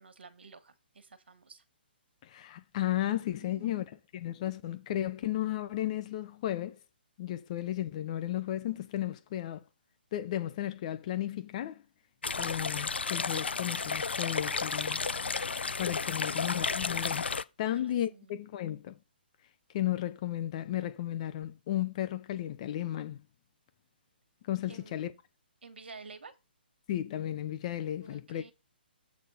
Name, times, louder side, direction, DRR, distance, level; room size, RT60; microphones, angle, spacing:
voice 1, 0.0-1.6 3.4-3.8 17.6-17.8 18.1-18.3 24.7-25.0 25.6-26.3 28.0-28.5, right 4 dB, 80° right, 1.4 m, -51 dB
voice 2, 2.2-6.8 7.2-9.6 10.1-11.8 12.4-15.0 15.8-17.3 17.6-19.0 19.7-23.2 24.4-25.1 26.9-28.5, left 12 dB, 40° left, 0.7 m, -34 dB
sound 1, 12.2-17.4, left 5 dB, 90° left, 0.5 m, -32 dB
8.0 x 4.2 x 5.5 m
hypercardioid pair, 145°, 6 cm